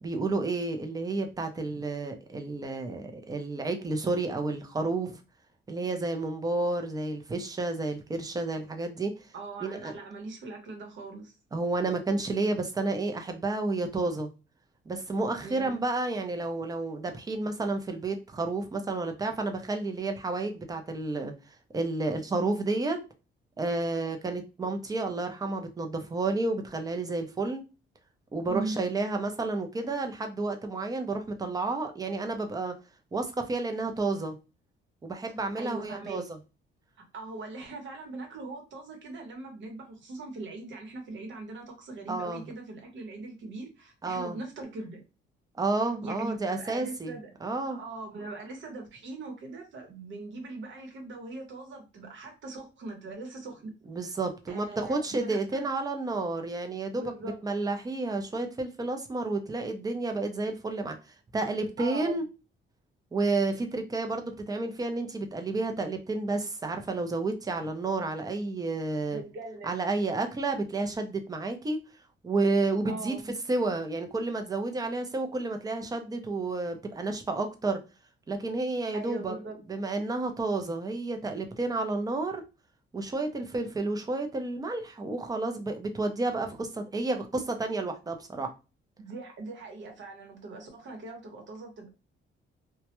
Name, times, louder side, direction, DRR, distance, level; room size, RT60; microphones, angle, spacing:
voice 1, 0.0-5.2 5.7-9.1 9.6-9.9 11.5-14.3 14.9-21.3 21.7-23.0 23.6-27.6 28.3-32.7 33.1-34.4 35.0-36.4 42.1-42.4 44.0-44.4 45.6-47.8 53.9-57.1 57.4-61.0 61.3-62.2 63.1-69.2 69.6-71.8 72.2-73.2 73.5-77.8 78.3-79.4 79.7-82.4 82.9-88.5, right 3 dB, 20° right, 0.5 m, -31 dB
voice 2, 9.3-11.3 15.4-15.8 28.5-28.8 35.5-36.2 37.1-45.0 46.0-47.3 47.7-53.7 54.0-54.1 54.5-55.7 56.9-57.4 61.8-62.1 69.1-69.7 72.8-73.2 78.9-79.6 89.0-91.9, right 3 dB, 65° right, 1.0 m, -41 dB
2.2 x 2.1 x 2.9 m
cardioid pair, 115°, 21 cm